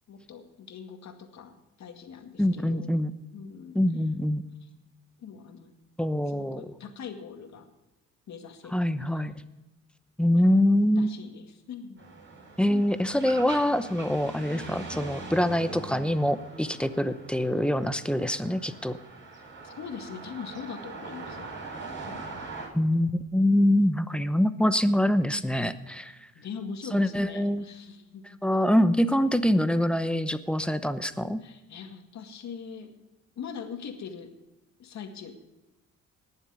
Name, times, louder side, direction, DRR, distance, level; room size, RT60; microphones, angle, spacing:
voice 1, 0.1-3.0 3.3-3.8 5.2-5.7 6.3-7.7 8.3-8.7 9.1-9.2 11.0-12.1 12.7-12.8 16.8-16.9 19.6-21.5 22.0-22.5 26.4-28.4 31.4-32.9 33.4-34.3 34.8-35.3, left 6 dB, 65° left, 5 dB, 2.1 m, -42 dB
voice 2, 2.4-3.1 3.7-4.4 6.0-6.7 8.7-9.3 10.2-11.1 12.6-19.0 22.7-26.2 26.9-27.7 28.4-31.4, left 1 dB, 5° left, 12 dB, 0.8 m, -24 dB
sound 1, 12.0-22.7, right 3 dB, 40° right, 4.7 m, -42 dB
19.5 x 7.3 x 5.0 m, 1.0 s
cardioid pair, 90°, 30 cm